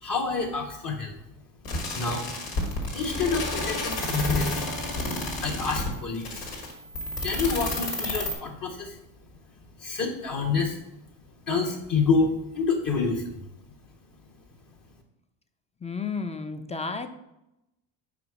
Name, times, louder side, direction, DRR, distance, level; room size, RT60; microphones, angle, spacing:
voice 1, 0.0-1.1 1.9-2.3 2.9-4.7 5.3-6.5 7.2-9.0 9.8-10.8 11.5-13.4, left 4 dB, 40° left, 0 dB, 1.1 m, -28 dB
sound 1, 1.6-8.3, left 1 dB, 80° left, 1.9 m, -31 dB
voice 2, 15.8-17.1, left 4 dB, 15° left, 8 dB, 0.4 m, -32 dB
5.0 x 4.4 x 4.8 m, 0.87 s
supercardioid pair, 85°, 50 cm